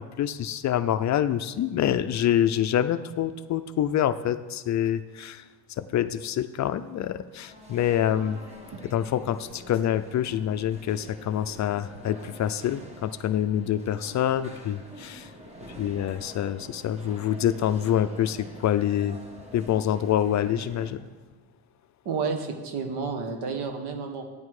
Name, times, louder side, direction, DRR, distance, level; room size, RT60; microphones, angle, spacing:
voice 1, 0.0-5.4 5.8-8.4 8.9-15.3 15.8-19.2 19.5-21.1, left 10 dB, 45° left, 11 dB, 0.4 m, -26 dB
sound 1, 7.3-20.9, equal, 15° right, 1.2 m, -46 dB
voice 2, 22.0-24.3, right 5 dB, 75° right, 5 dB, 1.4 m, -31 dB
12.5 x 9.4 x 4.8 m, 1.3 s
cardioid pair, 155°, 40 cm